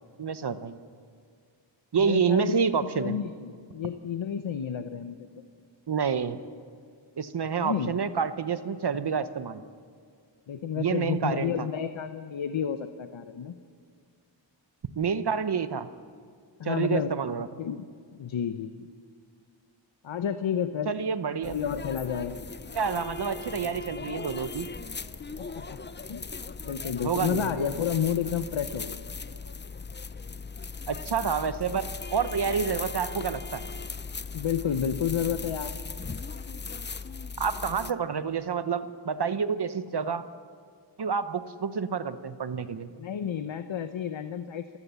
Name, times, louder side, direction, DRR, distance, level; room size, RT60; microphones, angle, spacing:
voice 1, 0.2-0.8 1.9-3.2 5.9-6.4 7.2-9.6 10.8-11.7 15.0-15.9 16.6-17.5 20.9-21.6 22.7-24.7 27.0-27.7 30.9-33.6 37.4-40.3 41.0-42.9, right 6 dB, 60° right, 12 dB, 1.0 m, -28 dB
voice 2, 1.9-5.3 7.6-8.0 10.5-13.5 16.6-17.1 17.6-17.8 18.1-18.9 20.0-20.9 21.4-22.4 25.4-25.8 26.1-26.2 26.6-29.0 34.3-35.7 43.0-44.8, left 8 dB, 80° left, 9 dB, 0.9 m, -31 dB
sound 1, 21.4-37.9, left 4 dB, 25° left, 0.6 m, -38 dB
27.5 x 15.5 x 7.0 m, 2.1 s
wide cardioid pair, 90°, 46 cm